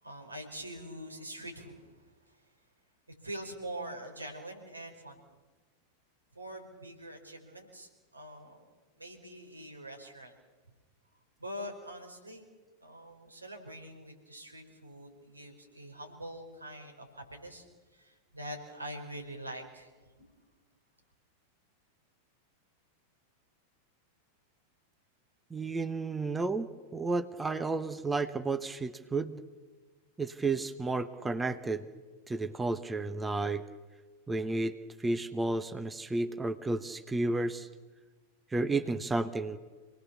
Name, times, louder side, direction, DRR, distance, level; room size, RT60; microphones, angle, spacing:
voice 1, 0.0-2.0 2.3-2.4 3.2-5.2 6.4-8.7 9.0-10.3 11.4-12.4 12.8-17.7 17.9-19.9, right 1 dB, 85° right, 2 dB, 5.2 m, -44 dB
voice 2, 25.5-26.7 26.9-29.4 30.2-31.8 32.3-33.6 34.3-37.7 38.5-39.6, right 3 dB, 10° right, 11 dB, 1.1 m, -32 dB
28.0 x 19.5 x 7.1 m, 1.3 s
figure-of-eight pair, 90°, 0 cm